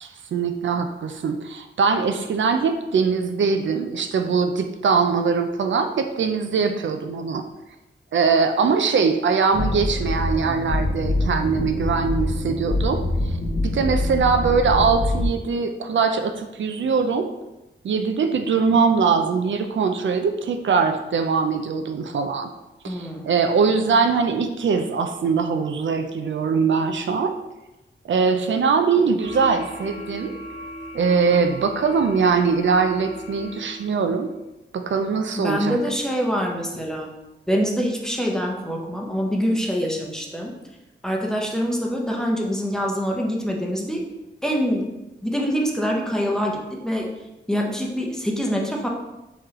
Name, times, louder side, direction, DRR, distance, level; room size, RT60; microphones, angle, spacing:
voice 1, 0.0-7.4 8.1-13.4 13.6-17.3 17.8-22.5 22.8-27.4 28.1-30.4 30.9-34.3 34.7-35.8, right 5 dB, 80° right, 6 dB, 0.4 m, -22 dB
sound 1, 9.5-15.3, left 1 dB, 90° left, 1.2 m, -25 dB
voice 2, 22.8-23.3 35.4-37.1 37.5-40.5 41.0-44.0 44.4-44.8 45.2-47.1 47.5-48.9, equal, 5° left, -1 dB, 0.7 m, -25 dB
sound 2, 29.2-34.0, left 1 dB, 35° left, 1.2 m, -37 dB
4.7 x 3.1 x 3.6 m, 0.99 s
wide cardioid pair, 115°, 19 cm